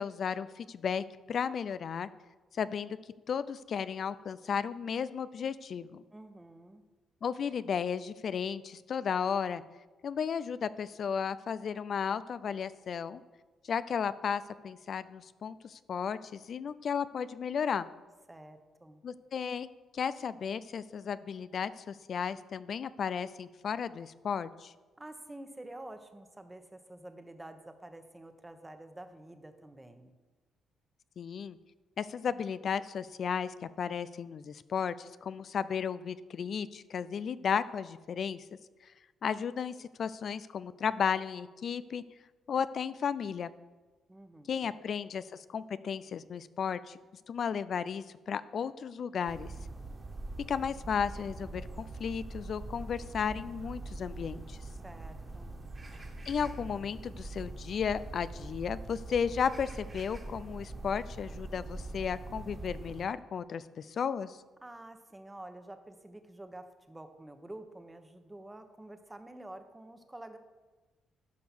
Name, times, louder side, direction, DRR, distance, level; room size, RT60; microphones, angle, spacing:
voice 1, 0.0-2.1 2.5-3.0 3.3-6.0 7.2-9.6 10.0-13.2 13.7-17.9 19.0-19.7 19.9-24.7 31.2-31.6 32.0-38.4 39.2-42.0 42.5-43.5 44.5-45.2 45.5-47.0 47.3-49.5 50.5-54.6 56.3-64.4, left 7 dB, 55° left, 15 dB, 0.4 m, -34 dB
voice 2, 6.1-6.8 18.3-19.0 25.0-30.1 44.1-44.8 54.7-55.6 64.6-70.4, right 1 dB, 15° right, 7 dB, 1.2 m, -49 dB
sound 1, 49.3-63.1, right 2 dB, 30° right, 1.9 m, -43 dB
11.5 x 5.4 x 6.1 m, 1.2 s
supercardioid pair, 70°, 0 cm